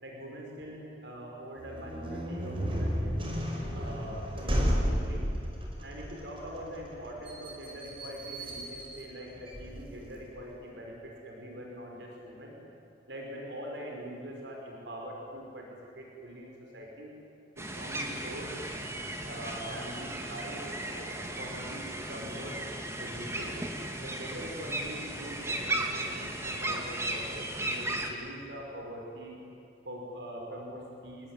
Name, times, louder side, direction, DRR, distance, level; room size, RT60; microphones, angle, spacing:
voice 1, 0.0-3.1 3.7-5.2 5.8-12.6 13.1-17.1 17.6-18.5 19.0-22.6 23.0-23.5 24.0-29.3 29.8-31.3, equal, 85° right, -1 dB, 5.3 m, -43 dB
sound 1, 1.6-10.3, equal, 30° right, 5.3 m, -33 dB
sound 2, 17.6-28.1, right 1 dB, 15° right, 2.5 m, -36 dB
28.5 x 20.5 x 9.8 m, 2.7 s
head